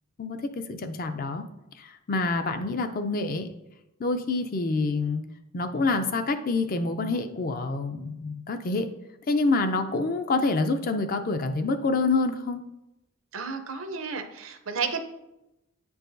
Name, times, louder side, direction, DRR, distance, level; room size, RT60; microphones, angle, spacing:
voice 1, 0.2-1.5 1.8-3.5 4.0-5.2 5.5-8.9 9.3-12.6, left 3 dB, 40° left, 8 dB, 0.4 m, -27 dB
voice 2, 13.3-15.0, right 5 dB, 65° right, 7 dB, 0.6 m, -32 dB
8.8 x 4.7 x 2.6 m, 0.93 s
head